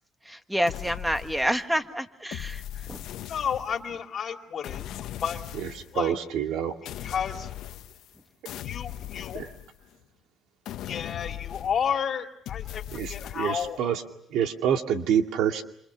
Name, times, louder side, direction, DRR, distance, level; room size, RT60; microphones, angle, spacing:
voice 1, 0.2-3.1, equal, 5° right, 8 dB, 1.6 m, -28 dB
sound 1, 0.7-1.8 2.3-3.9 4.6-6.0 6.9-8.2 8.5-10.1 10.7-12.0 12.5-13.7, left 12 dB, 75° left, 1.2 m, -39 dB
voice 2, 3.3-5.4 5.9-6.1 7.0-7.5 8.6-9.4 10.8-13.8, left 7 dB, 50° left, 5 dB, 2.5 m, -31 dB
voice 3, 5.5-6.7 9.3-9.5 12.9-14.0 14.3-15.6, right 8 dB, 75° right, 5 dB, 2.2 m, -27 dB
28.0 x 27.5 x 6.2 m, 0.71 s
cardioid pair, 105°, 0 cm